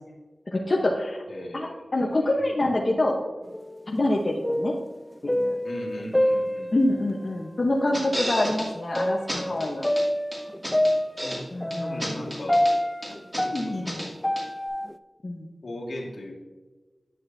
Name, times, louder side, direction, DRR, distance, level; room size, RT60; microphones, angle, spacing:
voice 1, 0.5-1.2 1.5-1.7 1.9-3.2 3.9-4.7 5.2-5.6 6.7-9.9 11.5-12.4 13.4-14.1 15.2-15.5, left 1 dB, 50° left, -1 dB, 0.9 m, -26 dB
voice 2, 1.3-2.5 5.6-6.7 11.2-11.5 11.8-12.6 13.4-14.2 15.6-16.3, left 1 dB, 70° left, -3 dB, 1.8 m, -38 dB
sound 1, 3.5-4.0 4.3-7.1 7.9-8.0 9.0-14.9, left 1 dB, 15° left, 0.3 m, -27 dB
sound 2, 7.9-8.7 8.9-9.0 9.3-10.0 10.3-11.4 11.7-12.7 13.0-14.1 14.4-14.5, equal, 15° right, 2.5 m, -32 dB
9.9 x 6.5 x 2.6 m, 1.3 s
wide cardioid pair, 65°, 0 cm